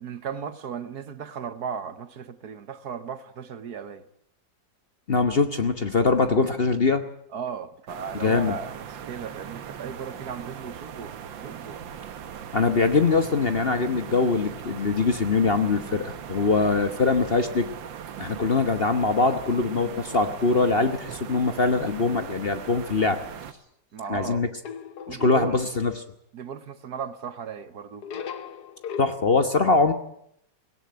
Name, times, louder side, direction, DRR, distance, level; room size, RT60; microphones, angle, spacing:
voice 1, 0.0-4.1 7.3-11.8 23.9-24.4 25.1-25.6 26.3-28.0, right 7 dB, 60° right, 1.5 m, -36 dB
voice 2, 5.1-7.0 8.1-8.5 12.5-17.7 18.2-23.2 24.1-24.5 25.1-25.9 29.0-29.9, left 4 dB, 35° left, 1.1 m, -22 dB
sound 1, 7.9-23.5, right 8 dB, 85° right, 1.9 m, -39 dB
sound 2, 24.6-25.7 28.0-29.1, left 7 dB, 60° left, 1.6 m, -37 dB
18.0 x 17.0 x 9.5 m
omnidirectional pair, 2.0 m